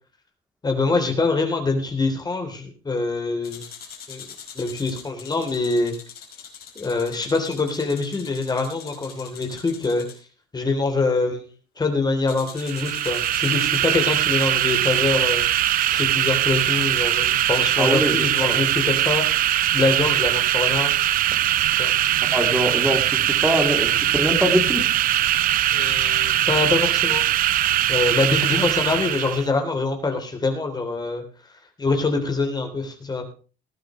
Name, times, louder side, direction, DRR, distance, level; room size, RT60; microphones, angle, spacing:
voice 1, 0.6-3.6 4.1-4.3 4.5-5.9 6.7-10.0 10.5-15.4 15.9-20.9 21.8-21.9 25.7-27.3 27.9-31.2 31.8-33.2, left 3 dB, 25° left, 5 dB, 3.3 m, -24 dB
sound 1, 3.4-10.2 12.3-19.3, left 7 dB, 65° left, 5.0 m, -43 dB
sound 2, 12.6-29.5, right 13 dB, 55° right, 0.5 m, -21 dB
voice 2, 17.8-18.6 22.3-24.9 28.5-28.6, equal, 5° right, 3 dB, 3.0 m, -23 dB
18.5 x 11.5 x 3.2 m, 0.35 s
cardioid pair, 110°, 17 cm